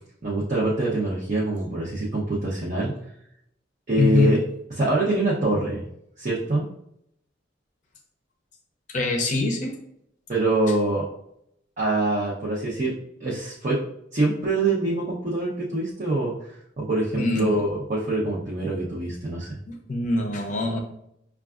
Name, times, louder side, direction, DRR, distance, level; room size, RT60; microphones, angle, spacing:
voice 1, 0.2-2.9 3.9-4.4 4.8-5.8 6.2-6.6 10.3-11.0 11.8-12.9 13.2-13.8 14.1-16.3 16.8-19.5, right 2 dB, 40° right, -7 dB, 0.7 m, -24 dB
voice 2, 4.0-4.4 8.9-9.8 17.2-17.6 19.7-20.8, left 2 dB, 45° left, 2 dB, 0.6 m, -23 dB
5.8 x 2.3 x 2.4 m, 0.75 s
head